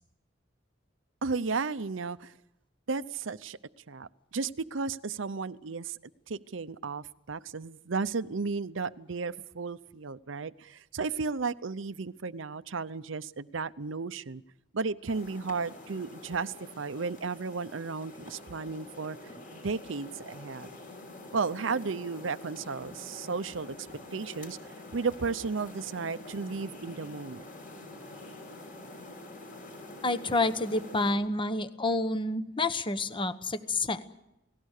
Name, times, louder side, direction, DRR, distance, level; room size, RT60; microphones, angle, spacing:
voice 1, 1.2-2.3 2.9-3.6 3.9-6.0 6.3-14.4 14.7-19.2 19.5-20.7 21.3-23.7 24.1-24.6 24.9-27.4, right 4 dB, 70° right, 14 dB, 0.7 m, -34 dB
sound 1, 15.1-31.1, left 2 dB, 45° left, 6.2 m, -46 dB
voice 2, 30.0-34.0, left 2 dB, 25° left, 12 dB, 1.0 m, -29 dB
28.5 x 18.5 x 6.6 m, 0.88 s
head